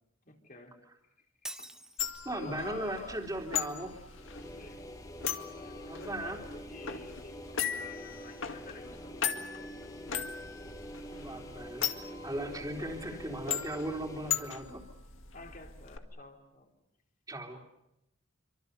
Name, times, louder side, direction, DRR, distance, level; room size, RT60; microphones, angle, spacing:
voice 1, 0.3-0.8 1.2-1.3 1.6-1.8 2.3-3.2 4.5-4.9 5.3-9.7 12.8-13.3 15.3-16.7, left 3 dB, 45° left, 3 dB, 3.9 m, -50 dB
Shatter, 1.4-2.4, right 1 dB, 5° right, 0.9 m, -45 dB
sound 1, 2.0-16.0, left 8 dB, 85° left, 2.1 m, -39 dB
voice 2, 2.2-4.0 5.9-6.4 11.1-14.8 17.3-17.6, right 1 dB, 20° right, 2 dB, 3.5 m, -38 dB
sound 2, 4.1-14.5, equal, 15° left, 1.4 m, -46 dB
28.0 x 25.5 x 6.9 m, 0.86 s
head